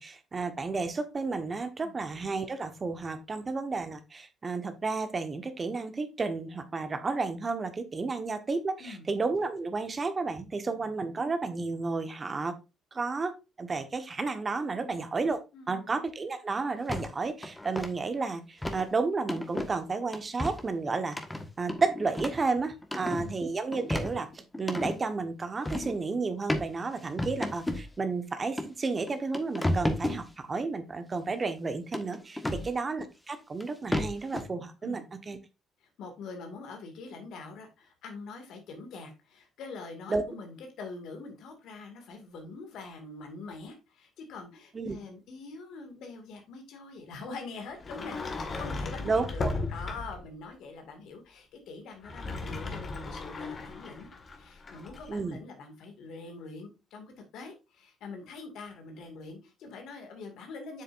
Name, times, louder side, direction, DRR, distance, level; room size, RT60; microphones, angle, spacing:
voice 1, 0.0-12.6 12.9-15.4 15.7-21.2 21.6-35.4 40.1-40.2 44.7-45.0 49.0-49.5 55.1-55.4, right 4 dB, 35° right, 9 dB, 1.3 m, -32 dB
voice 2, 15.5-15.9 22.9-23.4 32.4-32.8 34.8-35.1 35.8-54.1 54.4-60.8, left 3 dB, 70° left, 5 dB, 2.2 m, -44 dB
sound 1, 16.9-17.1 17.4-17.9 18.6-18.8 19.3-19.7 20.1-20.7 21.1-22.5 22.8-23.3 23.7-25.0 25.7-25.9 26.5-26.7 27.2-27.9 28.6-28.7 29.1-30.2 31.9-32.7 33.6-33.7 33.9-34.4, left 1 dB, 15° left, 1.5 m, -32 dB
Sliding door, 47.8-50.3 51.9-55.1, left 3 dB, 45° left, 1.8 m, -36 dB
7.9 x 6.6 x 2.6 m, 0.27 s
hypercardioid pair, 55°, 0 cm